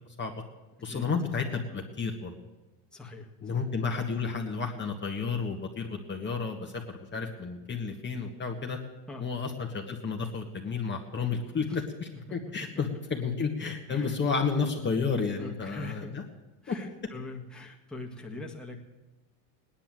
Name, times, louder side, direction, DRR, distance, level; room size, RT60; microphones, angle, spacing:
voice 1, 0.8-2.3 3.4-8.8 9.2-16.2 16.7-16.8, left 5 dB, 25° left, 2 dB, 1.6 m, -31 dB
voice 2, 2.9-3.3 3.5-3.7 9.1-9.3 11.1-11.3 11.7-11.8 13.9-14.2 15.4-16.1 16.6-18.9, left 2 dB, ahead, -1 dB, 1.7 m, -42 dB
17.5 x 10.0 x 7.6 m, 1.1 s
supercardioid pair, 120°, 45 cm